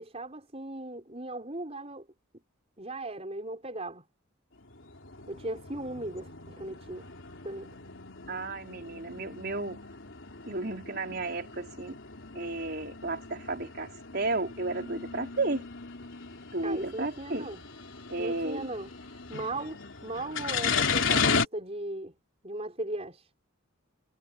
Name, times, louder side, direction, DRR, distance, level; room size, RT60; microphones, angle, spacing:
voice 1, 0.0-2.1 2.8-4.0 5.3-7.1 7.4-7.7 16.6-17.6 18.2-22.2 22.4-23.3, right 2 dB, 30° right, 5.1 m, -38 dB
sound 1, 4.6-21.4, left 5 dB, 65° left, 3.6 m, -35 dB
voice 2, 8.3-9.8 10.5-12.0 12.3-13.9 14.1-15.6 16.5-17.5 18.1-18.7, right 2 dB, 50° right, 4.7 m, -33 dB
head